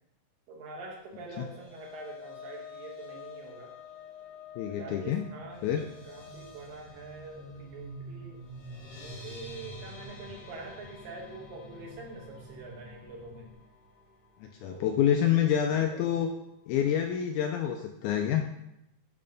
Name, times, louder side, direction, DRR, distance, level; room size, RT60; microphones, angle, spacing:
voice 1, 0.5-3.7 4.7-8.4 9.0-13.5 14.6-15.5 15.9-16.3, right 3 dB, 80° right, -2 dB, 3.0 m, -45 dB
sound 1, 1.1-15.4 15.7-16.0 16.3-16.4, left 6 dB, 60° left, 1.4 m, -50 dB
voice 2, 4.6-5.2 5.6-5.9 14.4-16.3 16.7-18.4, left 9 dB, 80° left, 3 dB, 1.8 m, -27 dB
sound 2, 5.4-13.5, right 2 dB, 55° right, 1.2 m, -48 dB
8.6 x 3.3 x 5.2 m, 0.83 s
omnidirectional pair, 3.9 m